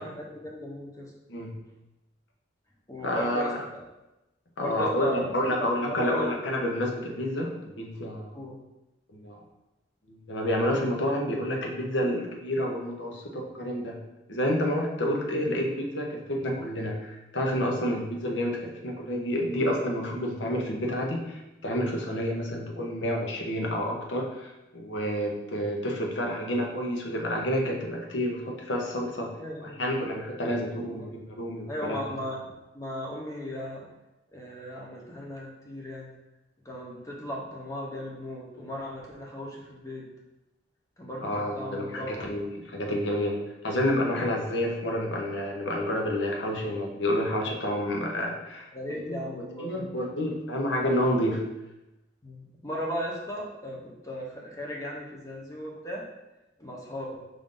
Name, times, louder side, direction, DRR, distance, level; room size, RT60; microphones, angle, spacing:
voice 1, 0.0-1.1 2.9-3.8 4.6-6.3 8.3-8.6 29.4-30.1 31.0-31.1 31.7-32.5 32.7-33.8 34.3-36.1 36.6-40.1 41.0-42.3 48.7-50.1 52.2-53.8 54.0-56.0 56.6-57.3, equal, 20° left, -2 dB, 0.8 m, -37 dB
voice 2, 3.0-3.6 4.6-8.4 9.1-9.4 10.1-13.2 13.5-14.0 14.3-29.3 29.6-32.0 41.2-48.7 49.1-49.2 49.6-51.5, equal, 80° left, 0 dB, 0.8 m, -29 dB
5.2 x 2.6 x 3.7 m, 0.97 s
head